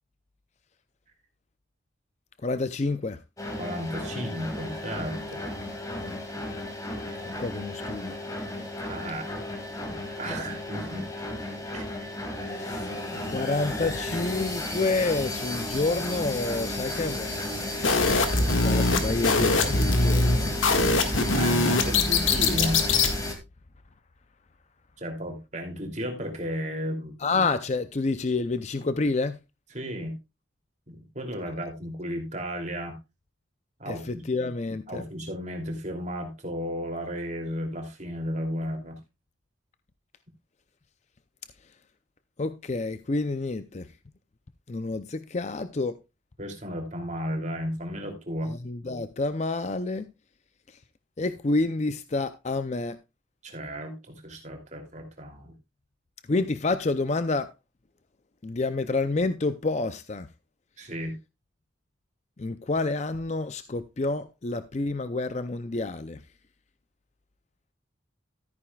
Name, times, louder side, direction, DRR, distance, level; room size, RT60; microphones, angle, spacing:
voice 1, 2.4-3.2 6.0-6.2 7.2-8.1 12.6-12.9 13.3-17.9 18.4-21.3 27.2-29.4 33.9-35.0 42.4-43.9 44.7-46.0 48.5-50.1 51.2-53.0 56.3-57.5 58.4-60.3 62.4-66.2, left 3 dB, 35° left, 0.5 m, -29 dB
sound 1, 3.4-23.3, left 1 dB, 15° left, 2.3 m, -33 dB
voice 2, 3.6-5.4 8.8-9.3 9.8-11.1 11.7-12.1 21.3-22.8 25.0-27.1 29.7-30.2 30.9-33.0 33.8-34.2 34.9-39.0 46.4-48.5 53.4-55.5 60.8-61.1, equal, 35° right, 2.8 m, -34 dB
sound 2, 17.8-23.1, left 3 dB, 80° left, 1.8 m, -23 dB
13.5 x 9.7 x 2.3 m
head